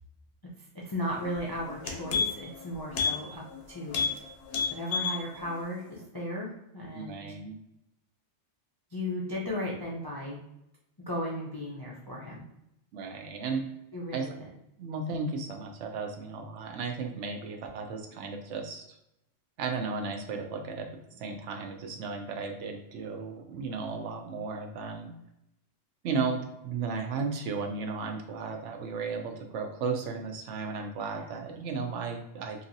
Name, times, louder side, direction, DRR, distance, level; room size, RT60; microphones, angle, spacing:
voice 1, 0.7-4.0 4.7-7.2 8.9-10.4 11.1-12.4 13.9-14.3 31.1-31.3, left 1 dB, 40° left, -5 dB, 0.3 m, -35 dB
sound 1, 1.3-1.4 1.7-2.6 2.9-3.2 3.5-3.6 3.9-4.2 4.5-5.2 5.6-5.7, left 5 dB, 70° left, 0.9 m, -29 dB
voice 2, 6.9-7.6 12.9-13.7 14.1-14.3 14.8-19.0 19.6-20.9 21.2-25.1 26.0-32.6, right 4 dB, 75° right, 3 dB, 0.9 m, -34 dB
3.0 x 2.7 x 2.6 m, 0.85 s
omnidirectional pair, 1.3 m